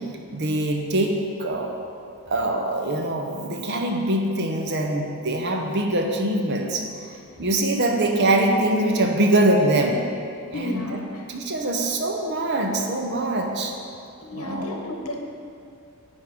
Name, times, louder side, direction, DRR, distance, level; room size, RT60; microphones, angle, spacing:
voice 1, 0.3-1.7 2.3-6.9 7.4-10.0 10.6-10.8 11.3-13.7 14.3-14.7, right 1 dB, 50° right, 2 dB, 0.7 m, -23 dB
voice 2, 10.5-11.2 14.2-15.2, left 1 dB, 80° left, 1 dB, 1.0 m, -32 dB
9.3 x 3.6 x 5.2 m, 2.5 s
head